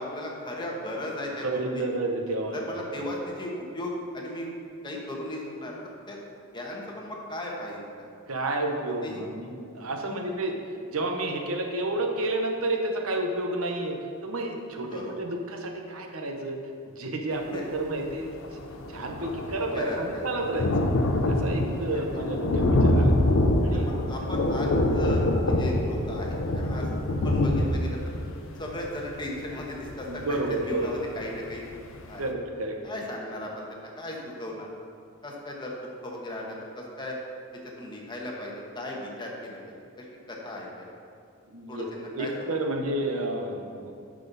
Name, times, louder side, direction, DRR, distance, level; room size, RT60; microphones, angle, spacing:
voice 1, 0.0-1.5 1.7-1.8 2.5-4.5 4.8-5.8 6.1-6.2 6.5-8.1 9.0-9.2 10.0-10.3 14.9-15.1 17.5-17.6 19.7-20.2 21.9-22.0 23.7-26.9 27.2-28.2 28.6-31.6 32.1-32.2 32.8-34.7 35.2-35.8 36.0-37.2 37.5-39.6 40.0-40.9 41.7-42.6, left 1 dB, 20° left, -2 dB, 1.2 m, -36 dB
voice 2, 1.3-2.6 8.3-10.6 10.9-14.0 14.2-16.6 17.0-18.3 18.9-20.7 21.3-23.1 23.6-23.9 26.9-27.0 30.1-30.9 32.2-32.8 41.5-43.9, right 2 dB, 80° right, 3 dB, 0.9 m, -30 dB
Thunder, 18.1-18.2 18.4-31.1 31.5-31.6 32.0-32.1, left 1 dB, 65° left, 0.7 m, -25 dB
9.4 x 6.3 x 4.0 m, 2.3 s
head